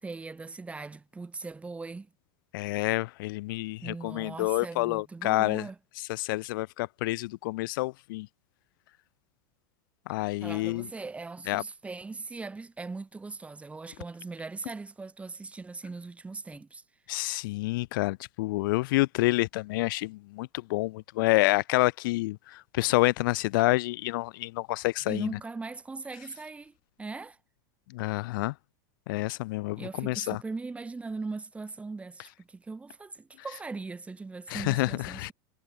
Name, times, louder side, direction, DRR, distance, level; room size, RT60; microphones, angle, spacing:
voice 1, 0.0-2.1 3.8-5.8 10.4-16.8 25.1-27.4 29.8-35.3, right 3 dB, 10° right, 2.9 m, -40 dB
voice 2, 2.5-5.6 6.1-8.3 10.1-10.9 11.5-11.6 17.1-25.3 27.9-28.5 29.1-30.4 34.5-35.3, left 20 dB, 70° left, 0.4 m, -28 dB
supercardioid pair, 135°, 12 cm